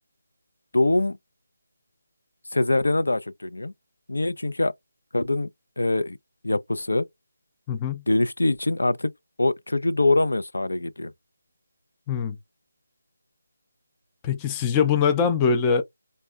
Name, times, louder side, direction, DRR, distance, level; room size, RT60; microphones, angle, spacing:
voice 1, 0.7-1.2 2.5-3.7 4.1-4.7 5.1-5.5 5.8-6.2 6.4-7.1 8.1-9.1 9.4-11.1, left 2 dB, 80° left, 0.4 m, -23 dB
voice 2, 7.7-8.0 12.1-12.4 14.2-15.8, left 6 dB, 15° left, 0.4 m, -22 dB
3.5 x 2.1 x 2.2 m
figure-of-eight pair, 165°, 0 cm